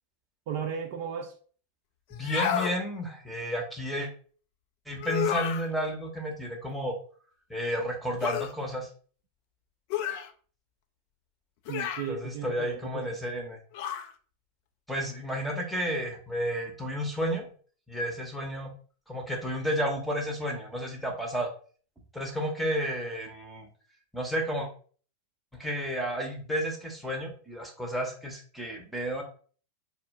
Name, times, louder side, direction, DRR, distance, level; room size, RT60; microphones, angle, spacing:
voice 1, 0.5-1.3 11.7-13.2, right 7 dB, 50° right, 0.4 m, -35 dB
sound 1, 2.1-2.8 5.0-5.7 8.2-8.5 9.9-10.3 11.7-12.1 13.7-14.1, left 9 dB, 45° left, 0.4 m, -30 dB
voice 2, 2.1-4.1 4.9-7.0 7.5-8.9 12.1-13.6 14.9-17.5 17.9-18.7 19.1-21.5 22.1-23.7 24.1-24.7 25.5-29.2, equal, ahead, 0.8 m, -32 dB
4.2 x 2.1 x 2.6 m
figure-of-eight pair, 90°, 0 cm